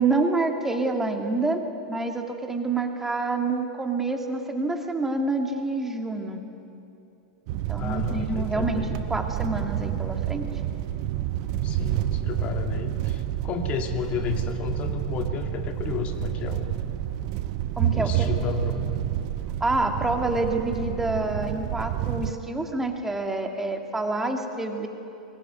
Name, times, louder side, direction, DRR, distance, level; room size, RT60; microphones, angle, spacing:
voice 1, 0.0-6.4 7.7-10.5 17.8-18.3 19.6-24.9, right 2 dB, 10° right, 3 dB, 2.3 m, -27 dB
sound 1, 7.5-22.3, right 12 dB, 45° right, 0.9 m, -29 dB
voice 2, 7.7-9.0 11.6-16.7 17.9-19.0, left 7 dB, 35° left, 5 dB, 1.9 m, -32 dB
24.0 x 21.0 x 9.3 m, 2.8 s
figure-of-eight pair, 95°, 4 cm